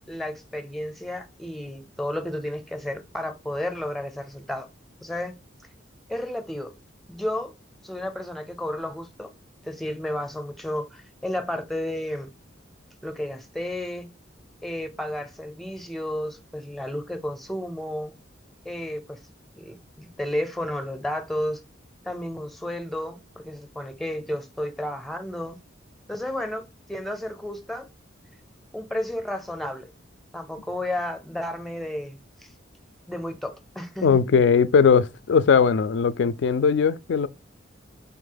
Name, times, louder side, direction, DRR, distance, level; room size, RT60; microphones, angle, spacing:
voice 1, 0.0-4.7 5.0-5.4 6.1-6.7 7.1-7.5 7.8-9.3 9.6-12.3 13.0-14.1 14.6-18.1 18.6-19.2 19.6-21.6 22.0-25.6 26.1-27.9 28.7-29.9 30.3-32.5 33.1-34.2, left 1 dB, ahead, 0.5 m, -32 dB
voice 2, 34.0-37.3, left 6 dB, 65° left, 0.3 m, -19 dB
3.5 x 3.5 x 3.8 m
head